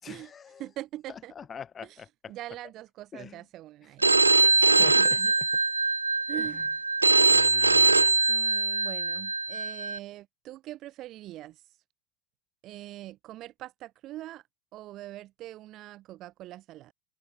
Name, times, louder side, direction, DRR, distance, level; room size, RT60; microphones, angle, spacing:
voice 1, 0.0-0.6 1.4-2.3 3.1-3.4 4.6-5.5 6.3-6.6 7.2-8.1, left 7 dB, 20° left, 5.4 m, -44 dB
voice 2, 0.6-1.3 1.8-2.0 2.3-4.3 4.8-5.3 6.3-6.6 8.3-11.8 12.6-14.5 14.7-16.9, right 15 dB, 35° right, 2.4 m, -43 dB
Telephone, 4.0-10.0, right 3 dB, 80° right, 0.5 m, -22 dB
open air
figure-of-eight pair, 90°, 0 cm